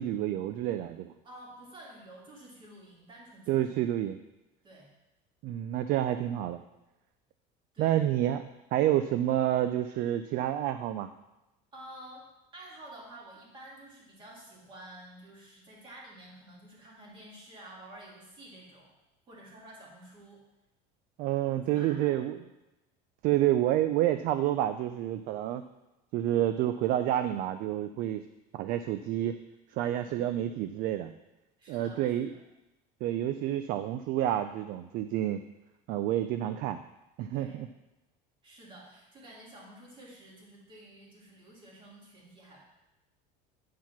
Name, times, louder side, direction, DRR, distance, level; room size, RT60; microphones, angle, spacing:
voice 1, 0.0-1.1 3.5-4.2 5.4-6.6 7.8-11.1 21.2-22.4 23.2-25.6 26.1-28.2 28.5-29.4 29.7-31.1 31.7-32.3 33.0-35.4 35.9-36.8 37.2-37.7, right 12 dB, 45° right, 10 dB, 0.4 m, -29 dB
voice 2, 1.2-3.7 4.6-4.9 7.7-8.1 11.7-18.9 19.3-20.4 21.7-22.3 31.6-32.4 37.3-37.6 38.4-42.6, right 1 dB, 25° right, -4 dB, 2.4 m, -50 dB
9.3 x 4.6 x 5.8 m, 0.98 s
cardioid pair, 170°, 20 cm